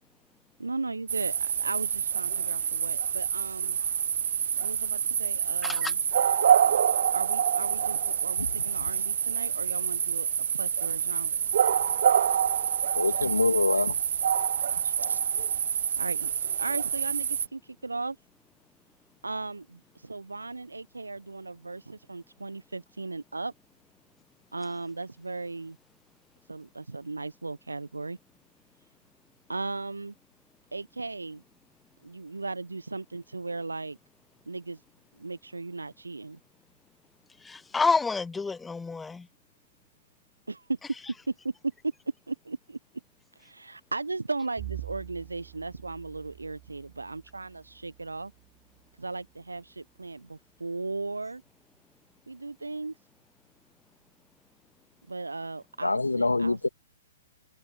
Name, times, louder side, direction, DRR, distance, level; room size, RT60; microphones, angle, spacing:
voice 1, 0.6-3.8 4.6-6.0 7.1-11.5 15.7-16.3 16.6-18.2 19.2-23.5 24.5-25.8 26.5-28.2 29.5-30.1 30.7-31.4 32.0-34.0 34.5-34.8 35.2-36.4 40.5-40.8 41.3-41.4 42.3-42.8 43.4-48.3 49.0-51.4 52.3-52.9 55.1-56.7, right 3 dB, 75° right, 1.1 m, -37 dB
sound 1, 1.1-17.5, right 8 dB, 55° right, 1.2 m, -27 dB
voice 2, 5.6-5.9 37.4-39.3, left 4 dB, 10° left, 1.1 m, -28 dB
voice 3, 12.9-14.0 15.0-15.2 55.8-56.7, left 3 dB, 75° left, 2.5 m, -26 dB
Bowed string instrument, 44.6-49.2, right 23 dB, 30° right, 4.2 m, -45 dB
figure-of-eight pair, 120°, 0 cm